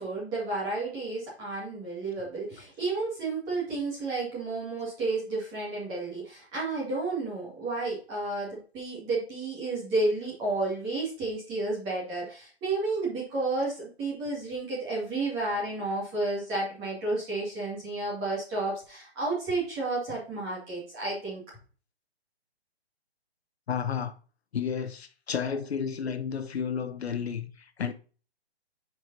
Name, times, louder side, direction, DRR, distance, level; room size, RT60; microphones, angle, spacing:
voice 1, 0.0-21.4, right 2 dB, 10° right, 2.1 m, -31 dB
voice 2, 23.7-24.1 24.5-27.5 27.8-27.9, left 7 dB, 70° left, 0.8 m, -31 dB
9.6 x 4.8 x 2.7 m
hypercardioid pair, 175°, 33 cm